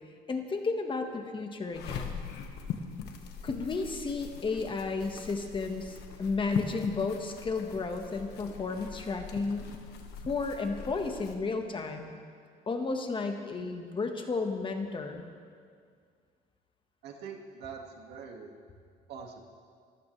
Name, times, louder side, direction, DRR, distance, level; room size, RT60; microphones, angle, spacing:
voice 1, 0.3-2.2 3.4-9.7 10.2-12.2 12.7-15.2, left 4 dB, 30° left, 4 dB, 1.5 m, -33 dB
sound 1, 1.7-11.4, left 6 dB, 75° left, 1.4 m, -42 dB
voice 2, 17.0-18.5 19.1-19.4, right 6 dB, 80° right, 2 dB, 2.1 m, -44 dB
25.5 x 14.5 x 3.4 m, 2.1 s
cardioid pair, 110°, 17 cm